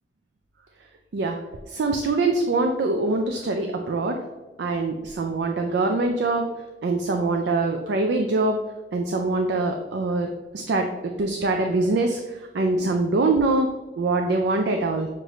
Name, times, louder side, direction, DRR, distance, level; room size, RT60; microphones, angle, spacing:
voice 1, 1.7-4.2 4.6-6.5 6.8-8.6 8.9-13.7 14.0-15.1, right 3 dB, 75° right, 4 dB, 0.4 m, -24 dB
6.4 x 2.6 x 3.1 m, 1.1 s
head